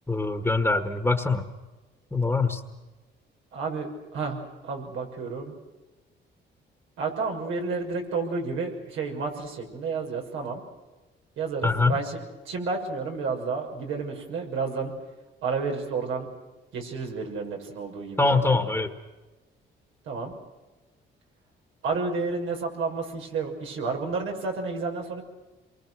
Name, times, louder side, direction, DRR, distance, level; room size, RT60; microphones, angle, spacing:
voice 1, 0.1-1.5 2.1-2.6 11.6-12.0 18.2-18.9, left 3 dB, 10° left, 6 dB, 1.7 m, -23 dB
voice 2, 3.5-5.5 7.0-10.6 11.4-14.9 15.4-16.3 16.7-18.6 20.1-20.3 21.8-25.2, right 4 dB, 85° right, 2 dB, 6.1 m, -31 dB
27.5 x 23.5 x 6.4 m, 1.2 s
cardioid pair, 90°, 20 cm